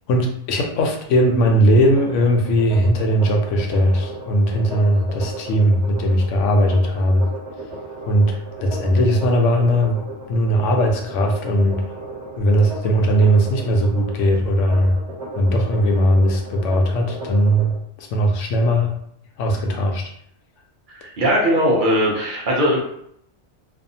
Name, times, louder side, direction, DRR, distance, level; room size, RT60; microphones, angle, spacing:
voice 1, 0.1-7.3 8.1-10.0 10.3-11.8 12.4-15.0 15.4-18.9 19.4-20.1, equal, 85° left, 2 dB, 0.9 m, -18 dB
sound 1, 1.7-17.7, right 2 dB, 70° right, 1.3 m, -35 dB
voice 2, 20.9-22.8, equal, 50° right, -3 dB, 0.7 m, -19 dB
2.6 x 2.4 x 2.6 m, 0.69 s
omnidirectional pair, 1.2 m